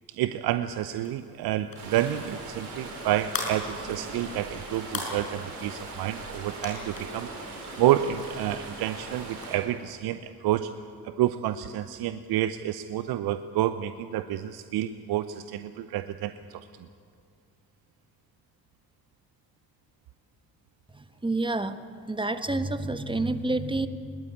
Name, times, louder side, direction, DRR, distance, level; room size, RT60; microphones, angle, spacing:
voice 1, 0.1-7.3 7.8-10.7 11.0-16.7, right 12 dB, 55° right, 12 dB, 0.8 m, -29 dB
sound 1, 0.8-9.9, left 3 dB, 50° left, 6.2 m, -42 dB
sound 2, 1.8-9.6, right 3 dB, 80° right, 4.4 m, -40 dB
voice 2, 20.9-21.8 22.1-23.9, right 2 dB, 10° right, 10 dB, 1.3 m, -28 dB
20.5 x 20.0 x 8.6 m, 2.3 s
figure-of-eight pair, 40°, 45 cm